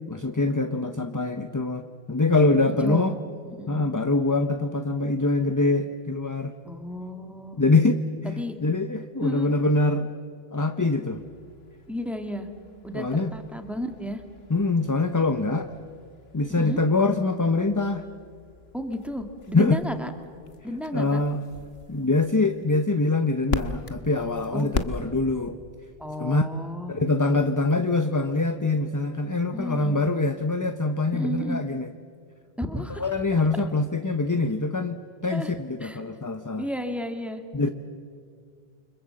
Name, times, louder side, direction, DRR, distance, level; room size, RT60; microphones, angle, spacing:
voice 1, 0.1-3.1 3.7-6.5 7.5-10.1 10.5-11.2 12.9-13.3 14.5-15.7 16.3-18.0 19.5-19.8 20.9-21.4 21.9-25.6 26.2-26.5 26.9-31.9 32.9-36.7 37.5-37.7, left 3 dB, 20° left, 8 dB, 0.8 m, -24 dB
voice 2, 2.7-3.1 3.5-3.9 6.6-7.6 8.2-8.6 9.2-9.5 11.9-12.5 12.8-14.2 16.5-16.8 18.7-20.1 20.6-21.2 24.5-24.8 26.0-26.9 29.5-30.0 31.1-31.6 32.6-33.0 35.3-35.5 35.8-36.0 36.6-37.4, equal, ahead, 6 dB, 1.9 m, -32 dB
sound 1, 11.2-25.5, left 4 dB, 80° left, 1.5 m, -39 dB
29.5 x 25.0 x 7.7 m, 2.2 s
omnidirectional pair, 1.0 m